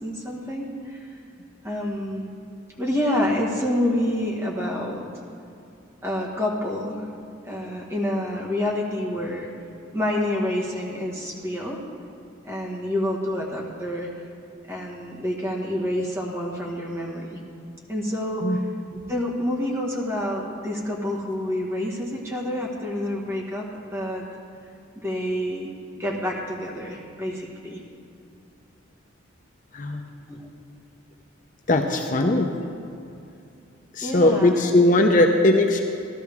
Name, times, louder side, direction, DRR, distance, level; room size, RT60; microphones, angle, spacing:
voice 1, 0.0-1.1 1.6-2.3 2.8-5.0 6.0-7.1 7.4-9.5 9.9-11.8 12.4-14.1 14.7-17.4 17.9-18.6 18.9-24.2 25.0-25.7 26.0-27.8 30.3-30.4 34.0-34.6, left 1 dB, 10° right, -3 dB, 1.7 m, -28 dB
voice 2, 31.7-32.5 33.9-35.8, left 2 dB, 40° left, 3 dB, 0.7 m, -19 dB
15.0 x 12.5 x 3.6 m, 2.6 s
head